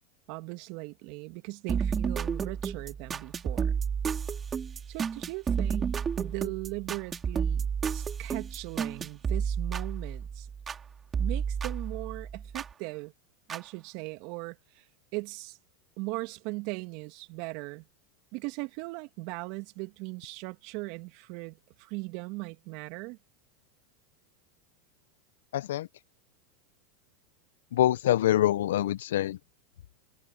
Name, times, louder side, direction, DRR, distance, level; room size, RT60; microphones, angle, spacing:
voice 1, 0.3-3.7 4.9-7.7 7.9-10.5 11.2-13.1 13.5-14.9 15.1-15.6 16.0-17.9 18.3-23.2, right 25 dB, 55° right, 2.6 m, -39 dB
sound 1, 1.7-10.8 11.1-12.7 13.5-13.6, right 7 dB, 25° right, 5.0 m, -31 dB
voice 2, 25.5-25.9 27.7-29.4, left 13 dB, 75° left, 0.9 m, -25 dB
hypercardioid pair, 100°, 0 cm